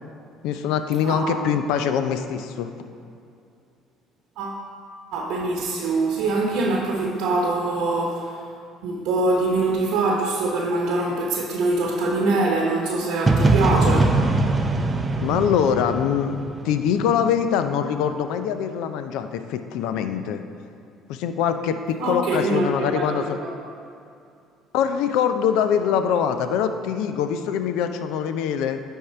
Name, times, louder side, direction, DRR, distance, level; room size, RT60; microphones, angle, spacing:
voice 1, 0.4-2.7 15.2-16.4 16.6-20.4 21.1-23.4 24.7-28.8, left 8 dB, 80° left, 9 dB, 0.4 m, -23 dB
voice 2, 1.0-1.4 4.4-4.6 5.1-8.4 8.8-14.2 22.0-23.5, right 2 dB, 75° right, -1 dB, 0.9 m, -24 dB
sound 1, 13.3-17.1, right 2 dB, 25° right, 0.6 m, -21 dB
9.6 x 3.7 x 4.4 m, 2.5 s
supercardioid pair, 70°, 0 cm